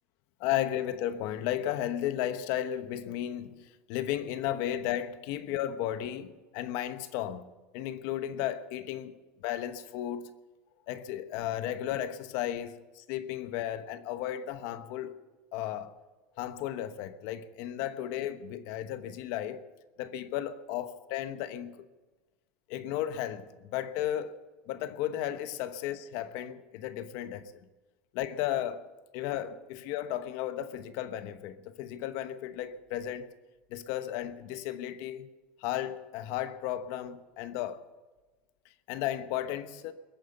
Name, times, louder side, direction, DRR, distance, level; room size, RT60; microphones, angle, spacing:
voice 1, 0.4-7.5 7.7-9.1 9.4-10.3 10.9-15.1 15.5-15.9 16.4-19.6 20.0-21.7 22.7-24.3 24.7-27.5 28.1-28.9 29.1-33.3 33.7-35.3 35.6-37.8 38.9-39.9, left 11 dB, 60° left, 1.1 m, -34 dB
21.5 x 9.3 x 6.9 m
cardioid pair, 160°, 6 cm